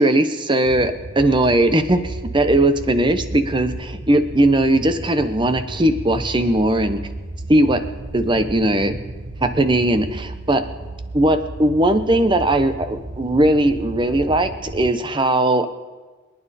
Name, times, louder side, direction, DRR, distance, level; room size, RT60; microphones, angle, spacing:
voice 1, 0.0-7.0 7.5-7.8 8.1-8.9 9.4-10.6 11.1-15.7, right 1 dB, 25° right, 9 dB, 0.8 m, -18 dB
sound 1, 0.7-14.9, right 2 dB, 60° right, 1.1 m, -34 dB
27.5 x 9.5 x 4.2 m, 1.3 s
head